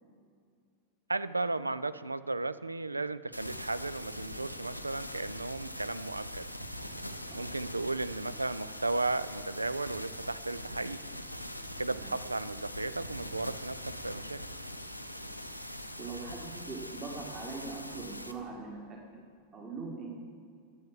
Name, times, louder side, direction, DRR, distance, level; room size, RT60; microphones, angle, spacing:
voice 1, 1.1-6.5 7.3-11.0 11.8-14.4, right 2 dB, 80° right, 15 dB, 0.4 m, -35 dB
sound 1, 3.3-18.3, equal, 90° left, 0.6 m, -42 dB
voice 2, 16.0-19.0 19.5-20.2, right 4 dB, 30° right, 0 dB, 1.8 m, -41 dB
10.5 x 8.0 x 7.2 m, 2.2 s
figure-of-eight pair, 90°, 0 cm